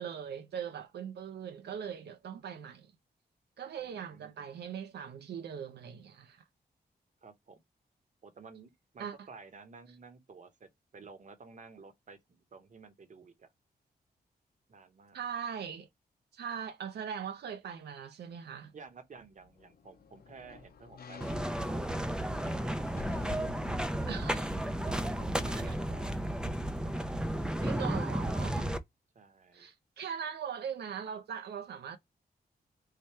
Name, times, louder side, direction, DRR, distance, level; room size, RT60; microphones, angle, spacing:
voice 1, 0.0-2.9 3.6-6.4 9.0-9.2 15.1-15.9 16.3-18.7 24.1-24.6 25.6-25.7 27.6-28.7 29.5-32.0, right 7 dB, 85° right, 0.5 m, -40 dB
voice 2, 3.8-4.5 7.2-7.6 8.2-10.7 10.9-13.5 14.7-15.2 18.7-22.7 23.1-23.2 24.8-26.1 26.7-27.1 27.4-27.7 29.1-29.7, right 4 dB, 50° right, 0.8 m, -53 dB
sound 1, 19.2-25.6 26.0-26.1, left 5 dB, 70° left, 0.7 m, -50 dB
sound 2, 21.2-28.8, right 1 dB, 5° right, 0.4 m, -33 dB
3.3 x 2.1 x 4.2 m
cardioid pair, 85°, 17 cm